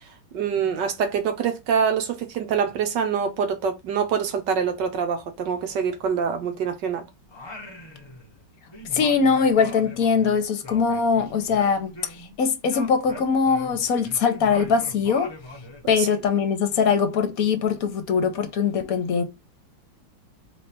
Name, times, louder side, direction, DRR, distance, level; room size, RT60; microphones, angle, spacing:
voice 1, 0.3-7.0 16.0-16.1, right 7 dB, 70° right, 1.5 m, -25 dB
Singing, 7.3-8.4 8.7-12.3 12.6-15.9, left 1 dB, 35° left, 0.4 m, -41 dB
voice 2, 8.9-15.3 15.9-19.2, left 6 dB, 60° left, 1.1 m, -22 dB
3.3 x 3.3 x 4.3 m
omnidirectional pair, 2.0 m